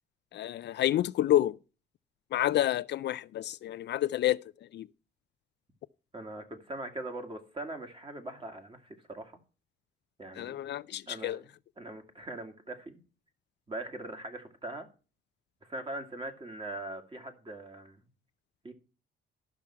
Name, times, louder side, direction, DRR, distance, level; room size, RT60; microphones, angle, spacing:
voice 1, 0.3-1.6 2.3-4.4 4.7-4.9 10.3-11.4, left 13 dB, 60° left, 0.4 m, -29 dB
voice 2, 6.1-9.4 10.2-10.6 11.1-11.5 11.8-13.0 13.7-14.9 15.6-18.0 18.6-18.7, right 2 dB, 25° right, 2.1 m, -41 dB
12.0 x 6.0 x 5.7 m
cardioid pair, 90°, 20 cm